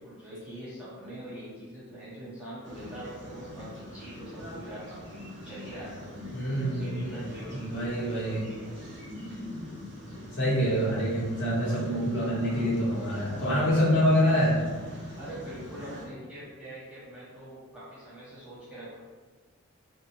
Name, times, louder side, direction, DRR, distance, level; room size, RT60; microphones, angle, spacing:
voice 1, 0.0-4.9 5.4-6.1 6.7-8.9 15.2-19.0, right 1 dB, 5° right, -10 dB, 0.6 m, -43 dB
sound 1, 2.6-16.1, left 1 dB, 55° right, 0.8 m, -43 dB
voice 2, 6.3-8.4 10.4-14.6, equal, 55° left, -7 dB, 0.9 m, -26 dB
2.7 x 2.0 x 2.8 m, 1.4 s
head